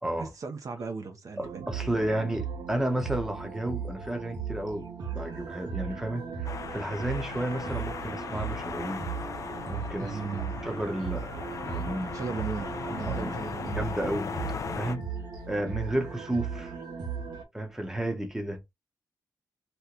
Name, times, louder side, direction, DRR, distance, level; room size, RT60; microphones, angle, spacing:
voice 1, 0.2-1.7 10.0-10.8 12.1-13.9, right 4 dB, 50° right, 0.6 m, -37 dB
voice 2, 1.4-4.9 5.1-9.0 9.7-10.2 10.6-11.3 11.6-12.1 13.1-13.3 13.7-14.3 14.7-15.0 15.5-16.7 17.5-18.6, right 1 dB, 5° right, 0.8 m, -32 dB
sound 1, 1.4-17.4, right 6 dB, 80° right, 1.1 m, -37 dB
sound 2, 6.4-15.0, left 6 dB, 50° left, 0.4 m, -38 dB
2.9 x 2.1 x 3.7 m
wide cardioid pair, 110°, 7 cm